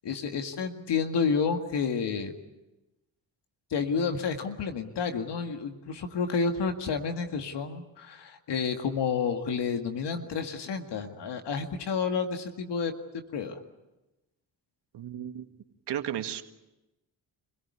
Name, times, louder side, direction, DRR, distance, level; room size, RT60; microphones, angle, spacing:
voice 1, 0.0-2.4 3.7-13.6, left 5 dB, 70° left, 5 dB, 2.1 m, -30 dB
voice 2, 14.9-15.4 15.9-16.4, right 10 dB, 70° right, 7 dB, 1.8 m, -33 dB
27.0 x 17.5 x 9.7 m, 1.0 s
supercardioid pair, 55°, 42 cm